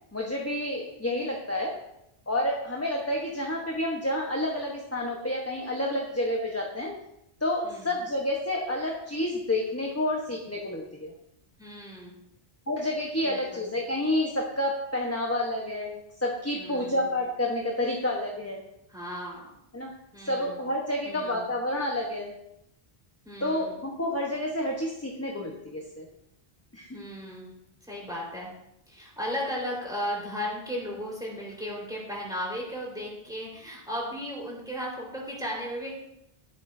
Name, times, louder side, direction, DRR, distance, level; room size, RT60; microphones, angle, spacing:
voice 1, 0.1-1.8 2.3-6.9 7.4-11.1 12.7-18.6 19.7-19.9 20.2-22.3 23.4-26.0 26.7-27.0, left 1 dB, 15° left, -1 dB, 1.1 m, -29 dB
voice 2, 7.6-7.9 11.6-12.2 13.2-13.6 16.5-17.1 18.9-19.5 20.1-20.6 21.0-21.5 23.2-23.8 26.9-27.5 27.8-28.5 28.9-35.9, equal, 5° right, -3 dB, 4.3 m, -35 dB
13.0 x 11.0 x 2.7 m, 0.80 s
omnidirectional pair, 1.0 m